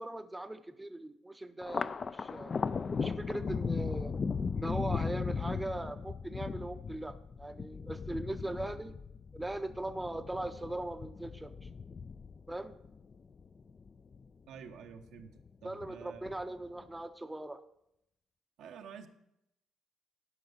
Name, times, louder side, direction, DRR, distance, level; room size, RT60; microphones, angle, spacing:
voice 1, 0.0-2.5 3.0-4.1 4.5-8.9 9.3-11.7 12.5-12.8 15.6-17.6, right 1 dB, 10° right, 8 dB, 0.6 m, -40 dB
Thunder, 1.6-14.3 14.7-15.5 15.8-16.7, left 5 dB, 40° left, 0.3 m, -37 dB
voice 2, 14.5-16.3 18.6-19.1, right 7 dB, 75° right, 6 dB, 0.8 m, -49 dB
11.5 x 5.3 x 5.5 m, 0.82 s
cardioid pair, 75°, 0 cm